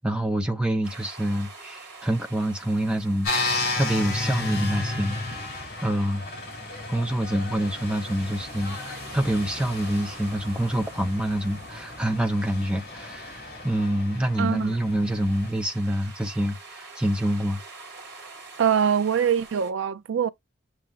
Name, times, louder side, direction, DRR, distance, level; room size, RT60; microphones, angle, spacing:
voice 1, 0.0-3.3 3.8-5.2 5.8-6.2 6.9-17.6, right 1 dB, 5° right, 0.6 m, -26 dB
sound 1, 0.8-19.7, right 3 dB, 60° right, 1.9 m, -47 dB
sound 2, 3.2-15.5, left 2 dB, 50° left, 2.6 m, -33 dB
voice 2, 14.4-14.8 18.6-20.3, right 7 dB, 90° right, 0.4 m, -23 dB
7.1 x 2.9 x 2.5 m
head